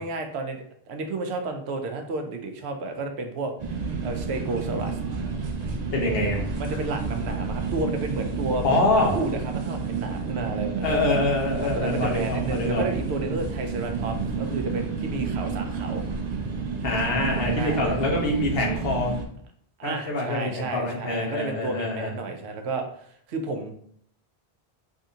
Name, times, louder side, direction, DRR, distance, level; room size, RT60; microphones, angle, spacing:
voice 1, 0.0-3.5 4.0-5.0 6.6-11.0 11.6-16.0 17.4-18.0 19.8-23.7, right 3 dB, 85° right, 5 dB, 0.9 m, -32 dB
sound 1, 3.6-19.3, right 5 dB, 50° right, 0.6 m, -30 dB
voice 2, 5.9-6.4 8.6-9.2 10.8-12.8 16.8-19.2 19.8-22.2, left 2 dB, 65° left, -1 dB, 1.2 m, -25 dB
3.7 x 3.4 x 2.8 m, 0.64 s
omnidirectional pair, 1.1 m